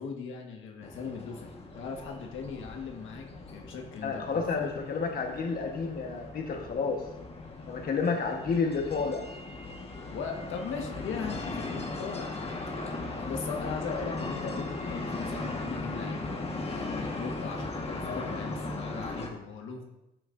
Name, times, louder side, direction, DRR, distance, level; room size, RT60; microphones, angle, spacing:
voice 1, 0.0-4.9 10.1-12.6 13.2-19.8, left 5 dB, 80° left, 2 dB, 1.4 m, -39 dB
sound 1, 0.8-19.3, left 2 dB, 30° left, 1.5 m, -38 dB
voice 2, 4.0-7.0 7.7-9.3, left 5 dB, 50° left, 2 dB, 1.2 m, -30 dB
13.0 x 6.2 x 2.6 m, 0.91 s
cardioid pair, 90°, 20 cm